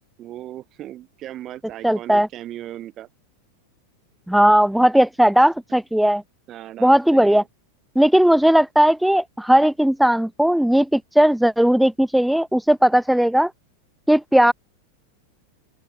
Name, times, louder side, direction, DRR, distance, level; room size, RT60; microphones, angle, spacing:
voice 1, 0.2-3.1 6.5-7.5, right 13 dB, 30° right, 4.7 m, -37 dB
voice 2, 1.8-2.3 4.3-6.2 6.8-7.4 8.0-13.5 14.1-14.5, equal, ahead, 0.6 m, -17 dB
open air
figure-of-eight pair, 90°, 0 cm